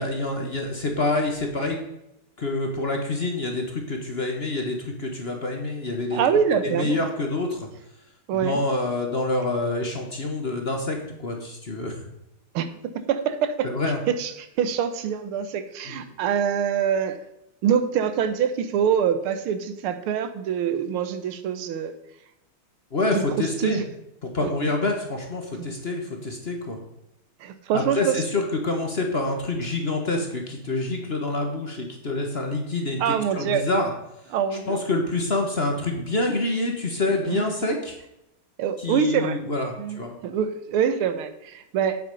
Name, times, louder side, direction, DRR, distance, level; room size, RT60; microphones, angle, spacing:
voice 1, 0.0-1.8 2.4-6.2 6.6-7.7 8.3-12.0 13.6-14.0 15.8-16.0 22.9-23.8 24.3-26.8 27.7-33.9 34.7-38.0 38.8-40.2, left 2 dB, 35° left, 3 dB, 1.2 m, -27 dB
voice 2, 6.1-7.0 8.3-8.6 12.6-12.7 13.0-13.7 14.1-17.2 17.6-22.0 23.1-23.8 24.4-24.5 25.6-25.7 27.4-28.2 33.0-33.7 34.3-34.8 37.2-37.4 38.6-39.4 39.8-42.0, right 8 dB, 90° right, 11 dB, 1.8 m, -25 dB
8.7 x 7.7 x 5.3 m, 0.86 s
omnidirectional pair, 2.3 m